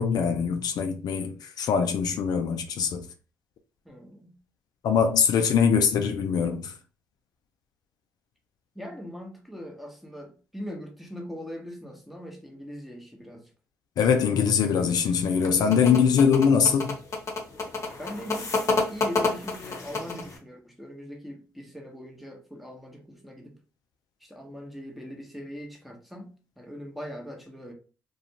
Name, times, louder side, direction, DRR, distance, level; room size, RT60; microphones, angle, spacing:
voice 1, 0.0-3.1 4.8-6.7 14.0-17.0, left 6 dB, 65° left, 0.4 m, -22 dB
voice 2, 3.8-4.4 8.7-13.5 18.0-23.6 24.2-26.3 26.6-27.7, equal, ahead, 0.9 m, -41 dB
sound 1, 15.2-20.4, left 3 dB, 45° left, 0.9 m, -29 dB
2.4 x 2.2 x 2.8 m
supercardioid pair, 55°, 7 cm